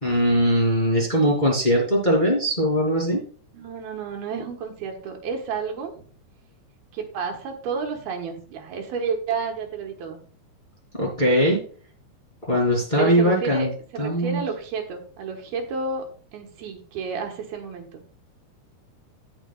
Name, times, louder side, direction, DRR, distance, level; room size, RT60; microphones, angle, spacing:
voice 1, 0.0-3.2 11.0-11.6 12.5-13.7 14.0-14.4, equal, 15° left, -2 dB, 2.1 m, -20 dB
voice 2, 3.5-6.0 6.9-10.2 13.0-16.1 16.3-18.0, right 5 dB, 75° right, 2 dB, 3.2 m, -31 dB
18.0 x 6.0 x 2.3 m, 0.42 s
omnidirectional pair, 4.5 m